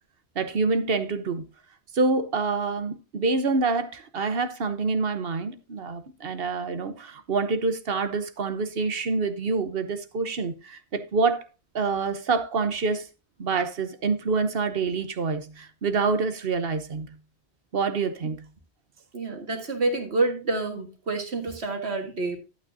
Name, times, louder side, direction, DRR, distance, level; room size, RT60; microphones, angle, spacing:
voice 1, 0.3-1.4 1.9-11.5 11.7-13.1 13.4-17.1 17.7-18.4, right 4 dB, 65° right, 1.2 m, -26 dB
voice 2, 19.1-22.4, right 3 dB, 80° right, 2.1 m, -28 dB
11.5 x 8.8 x 2.7 m
omnidirectional pair, 1.1 m